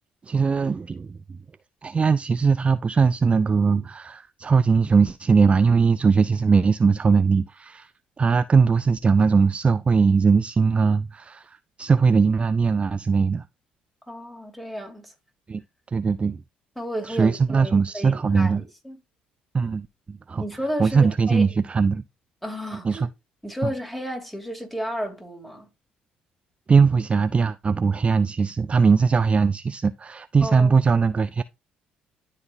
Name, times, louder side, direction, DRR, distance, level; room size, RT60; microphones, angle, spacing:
voice 1, 0.2-1.4 1.8-7.9 8.2-13.5 15.5-15.6 15.9-16.4 17.0-18.6 19.5-20.4 20.8-22.0 22.8-23.1 23.6-23.7 26.7-31.4, right 5 dB, 30° right, 0.3 m, -20 dB
voice 2, 14.1-15.1 16.8-19.0 20.4-21.5 22.4-23.0 23.4-25.7 30.4-30.8, equal, 5° left, 2.9 m, -32 dB
12.0 x 4.1 x 2.7 m
hypercardioid pair, 50°, 4 cm